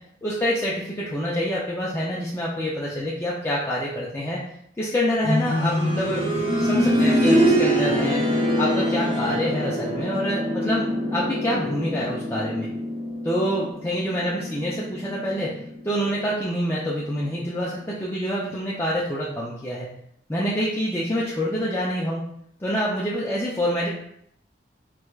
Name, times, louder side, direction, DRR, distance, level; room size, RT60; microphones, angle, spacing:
voice 1, 0.2-4.4 4.8-6.2 6.6-8.2 8.6-12.7 13.2-15.6 15.8-19.9 20.3-22.2 22.6-23.9, equal, 15° left, -6 dB, 0.3 m, -26 dB
sound 1, 5.2-16.0 17.4-17.5, equal, 25° right, 0.8 m, -24 dB
4.5 x 2.2 x 2.3 m, 0.71 s
head